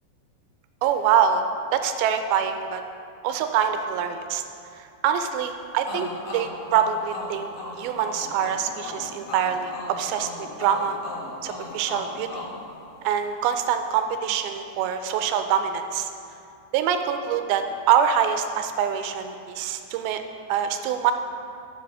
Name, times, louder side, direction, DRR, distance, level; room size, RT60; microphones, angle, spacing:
voice 1, 0.8-1.4 1.7-2.8 3.2-4.4 4.7-7.5 7.8-11.0 11.4-12.5 13.0-16.1 16.7-20.2 20.5-21.1, right 8 dB, 85° right, 7 dB, 2.3 m, -25 dB
sound 1, 5.8-13.4, left 2 dB, 60° left, 1.7 m, -37 dB
10.5 x 7.5 x 5.4 m, 2.5 s
omnidirectional pair, 4.7 m